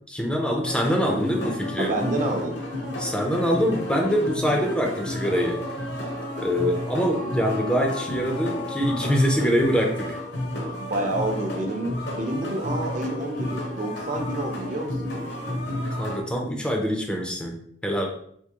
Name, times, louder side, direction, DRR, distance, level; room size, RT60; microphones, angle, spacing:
voice 1, 0.0-1.9 3.0-5.6 6.4-10.2 16.0-17.5 17.8-18.0, equal, 5° left, 1 dB, 0.4 m, -24 dB
sound 1, 0.6-16.2, left 1 dB, 70° left, 0.9 m, -32 dB
voice 2, 1.8-2.6 10.8-15.6, right 1 dB, 45° right, 3 dB, 0.5 m, -29 dB
Wind instrument woodwind instrument, 5.2-9.6, left 2 dB, 55° left, 0.6 m, -38 dB
3.5 x 2.6 x 2.9 m, 0.65 s
head